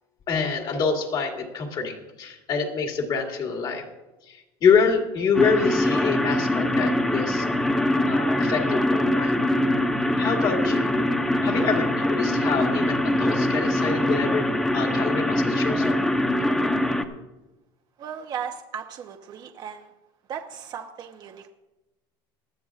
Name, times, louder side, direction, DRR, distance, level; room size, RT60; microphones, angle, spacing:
voice 1, 0.3-3.9 4.3-7.5 8.1-9.3 10.2-10.9 11.4-16.0, left 5 dB, 40° left, 1 dB, 2.2 m, -26 dB
sound 1, 5.3-17.0, left 1 dB, 5° left, 0.8 m, -23 dB
voice 2, 18.0-19.9 20.3-21.5, right 8 dB, 40° right, 4 dB, 0.8 m, -36 dB
20.0 x 13.0 x 2.4 m, 1.0 s
cardioid pair, 140°, 11 cm